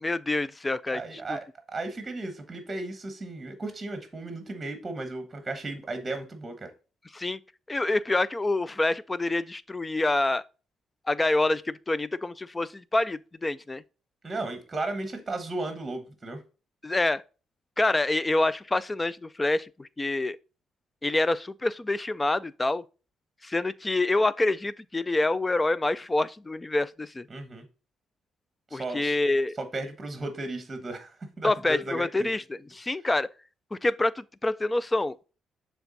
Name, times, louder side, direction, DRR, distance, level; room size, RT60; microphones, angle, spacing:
voice 1, 0.0-1.0 1.3-1.4 7.1-7.4 7.7-10.4 11.1-13.8 16.8-17.2 17.8-20.4 21.0-22.8 23.4-27.3 28.7-29.6 31.4-33.3 33.7-35.2, left 2 dB, 20° left, 0.3 m, -27 dB
voice 2, 0.9-6.7 14.2-16.4 27.3-27.6 28.7-29.2 29.6-32.3, right 2 dB, 25° right, 1.2 m, -35 dB
7.1 x 3.4 x 4.0 m
cardioid pair, 90°, 0 cm